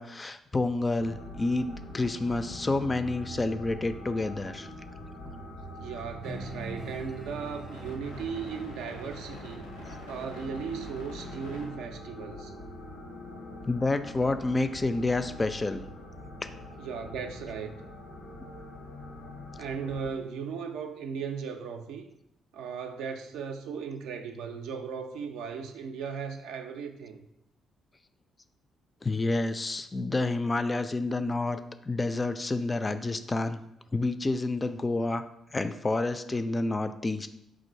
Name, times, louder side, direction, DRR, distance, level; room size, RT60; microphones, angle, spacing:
voice 1, 0.0-4.7 13.7-15.8 29.0-31.6 31.9-33.6 33.9-35.2 35.5-37.3, left 2 dB, 25° left, 10 dB, 0.3 m, -29 dB
sound 1, 1.0-20.1, left 1 dB, 85° left, 0.7 m, -43 dB
voice 2, 5.8-9.7 10.1-12.5 16.8-17.8 19.6-22.0 22.5-27.3, right 6 dB, 70° right, 5 dB, 0.3 m, -37 dB
sound 2, 6.2-11.0, right 1 dB, 25° right, 0.6 m, -45 dB
3.7 x 2.5 x 4.2 m, 0.80 s
hypercardioid pair, 45°, 0 cm